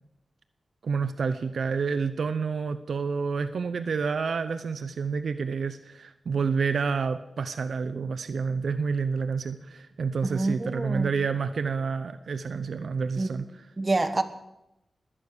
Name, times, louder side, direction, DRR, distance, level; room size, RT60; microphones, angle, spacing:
voice 1, 0.8-13.5, right 5 dB, 75° right, 10 dB, 0.7 m, -29 dB
voice 2, 10.2-11.1 13.2-13.3 13.8-14.2, right 2 dB, 30° right, 8 dB, 1.4 m, -27 dB
21.5 x 8.8 x 6.7 m, 0.91 s
wide cardioid pair, 85°, 0 cm